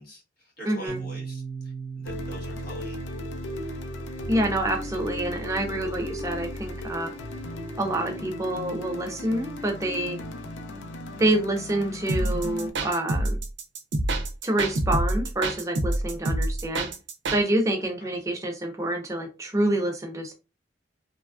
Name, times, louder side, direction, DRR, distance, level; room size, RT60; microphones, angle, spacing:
voice 1, 0.0-3.0 18.0-18.1, right 1 dB, 55° left, 1.3 m, -44 dB
voice 2, 0.7-1.0 4.3-7.1 7.8-10.2 11.2-13.4 14.4-16.9 17.3-20.3, right 1 dB, 15° right, 0.4 m, -27 dB
Piano, 0.9-8.3, right 5 dB, 25° left, 0.8 m, -41 dB
sound 1, 2.0-12.7, left 1 dB, 80° left, 0.5 m, -36 dB
sound 2, 12.1-17.4, right 1 dB, 70° right, 0.5 m, -27 dB
3.1 x 2.3 x 2.3 m
head